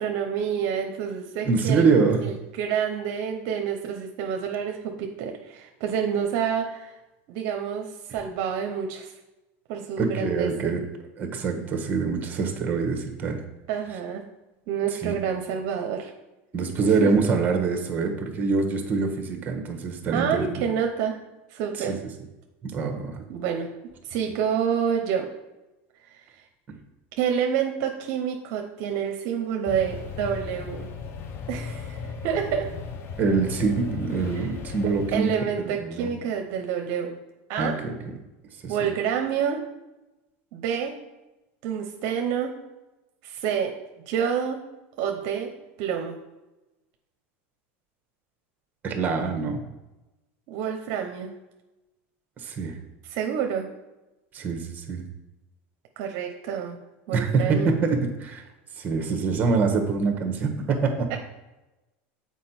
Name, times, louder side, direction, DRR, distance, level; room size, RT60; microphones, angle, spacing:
voice 1, 0.0-1.9 2.2-6.9 7.3-9.1 9.7-10.7 13.7-14.2 14.7-16.1 16.8-17.1 20.1-21.2 21.5-22.0 23.3-23.7 24.0-25.3 26.1-26.2 27.2-30.9 31.5-32.7 34.3-34.5 35.1-37.2 37.5-37.8 38.7-39.6 40.5-41.0 41.6-42.5 43.2-43.7 44.1-44.6 45.0-45.5 45.8-46.2 50.5-51.3 53.0-53.7 56.0-56.8 57.1-57.7 61.1-61.2, right 7 dB, 60° right, 4 dB, 0.8 m, -28 dB
voice 2, 1.4-2.2 10.0-10.8 11.2-13.4 15.0-15.1 16.5-20.6 21.8-22.0 22.6-23.2 33.2-35.3 35.6-36.1 37.6-37.9 38.6-38.7 48.8-49.6 52.4-52.8 54.3-55.0 57.1-58.4 58.8-61.1, right 4 dB, 25° right, 4 dB, 1.3 m, -25 dB
sound 1, 29.7-35.2, left 5 dB, 35° left, 0.7 m, -36 dB
7.4 x 4.6 x 4.3 m, 1.0 s
supercardioid pair, 130°, 7 cm